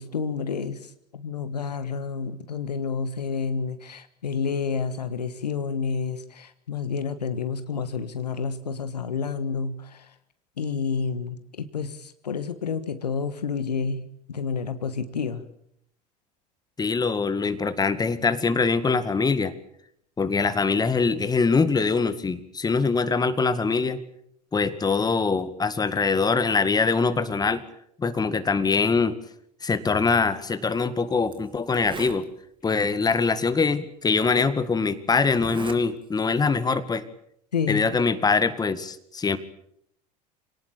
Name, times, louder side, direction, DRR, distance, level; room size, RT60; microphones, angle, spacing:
voice 1, 0.0-10.1 10.6-15.5 37.5-37.9, left 5 dB, 80° left, 12 dB, 1.5 m, -30 dB
voice 2, 16.8-19.5 20.2-24.0 24.5-27.6 28.0-29.2 29.6-32.3 32.6-37.0 37.7-39.4, left 4 dB, 20° left, 12 dB, 2.0 m, -23 dB
Zipper (clothing), 30.7-30.8 31.3-31.4 31.7-32.2 33.1-33.2 34.1-34.2 35.3-35.8 36.2-36.5, right 5 dB, 25° right, 2.6 m, -38 dB
27.0 x 18.5 x 8.7 m, 0.72 s
figure-of-eight pair, 75°, 21 cm